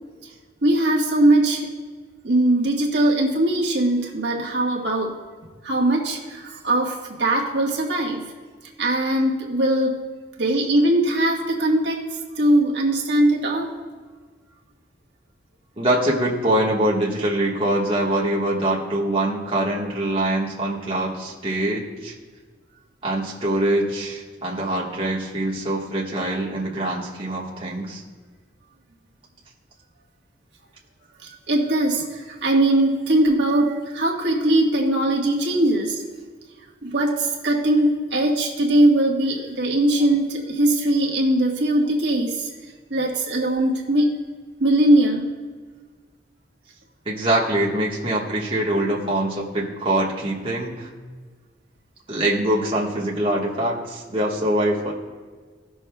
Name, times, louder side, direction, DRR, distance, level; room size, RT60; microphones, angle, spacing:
voice 1, 0.6-1.7 2.2-5.1 5.6-8.2 8.8-10.0 10.4-12.0 12.4-13.7 31.2-36.0 36.8-42.5 42.9-44.2 44.6-45.3, right 1 dB, 65° right, -2 dB, 1.3 m, -20 dB
voice 2, 15.8-22.1 23.0-28.0 47.0-50.9 52.1-54.9, right 1 dB, 30° right, -4 dB, 1.3 m, -24 dB
18.0 x 6.2 x 2.2 m, 1.5 s
head